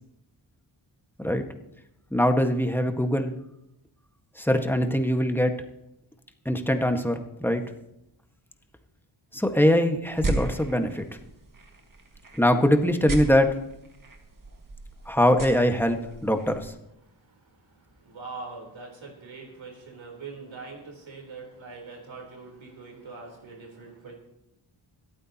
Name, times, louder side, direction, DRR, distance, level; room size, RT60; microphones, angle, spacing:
voice 1, 2.1-3.3 4.4-5.7 6.4-7.6 9.3-11.0 12.3-13.6 15.0-16.7, equal, 5° left, 5 dB, 1.6 m, -22 dB
sound 1, 10.0-16.7, right 2 dB, 40° right, 2.0 m, -36 dB
voice 2, 17.7-24.1, right 4 dB, 65° right, 0 dB, 4.0 m, -42 dB
25.0 x 8.8 x 3.0 m, 0.86 s
cardioid pair, 45°, 49 cm